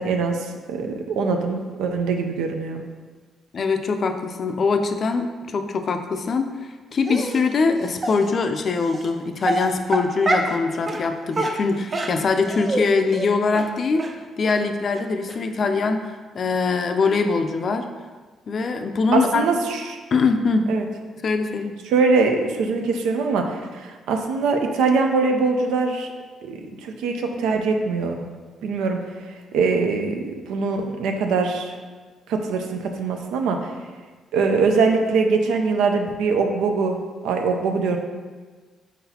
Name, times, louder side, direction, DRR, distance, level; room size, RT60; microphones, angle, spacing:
voice 1, 0.0-2.8 19.1-20.0 20.7-20.8 21.9-26.1 26.4-28.2 28.6-29.0 29.5-31.8 32.3-33.7 34.3-37.0 37.2-38.0, right 4 dB, 90° right, 4 dB, 0.5 m, -22 dB
voice 2, 3.5-14.1 14.4-17.9 18.5-19.5 20.1-20.7 21.2-21.8, left 4 dB, 50° left, 6 dB, 0.4 m, -23 dB
Dog, 7.1-7.4 8.0-8.1 8.9-9.1 9.4-10.6 10.9-11.0 11.3-12.8 13.1-13.3 13.5-13.7 14.0-14.1 14.5-14.6 15.0-15.1 15.3-15.4, right 2 dB, 35° right, 0.5 m, -25 dB
4.7 x 3.9 x 2.8 m, 1.4 s
cardioid pair, 90°, 0 cm